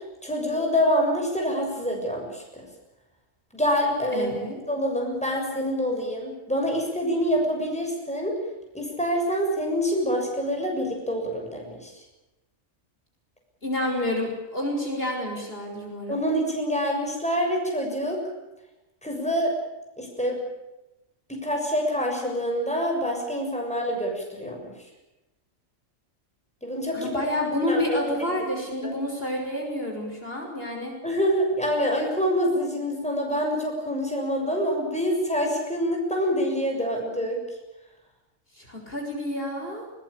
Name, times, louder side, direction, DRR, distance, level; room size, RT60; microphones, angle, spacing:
voice 1, 0.2-2.4 3.5-4.3 4.7-8.4 8.7-11.9 16.1-18.2 19.0-19.5 20.0-20.4 21.3-24.7 26.6-27.1 27.7-27.8 28.8-28.9 31.0-37.4, equal, 5° left, 1 dB, 6.9 m, -26 dB
voice 2, 4.1-4.6 13.6-16.2 26.9-30.9 38.6-39.8, left 1 dB, 45° left, 1 dB, 6.3 m, -29 dB
22.0 x 20.5 x 8.7 m, 0.99 s
omnidirectional pair, 1.4 m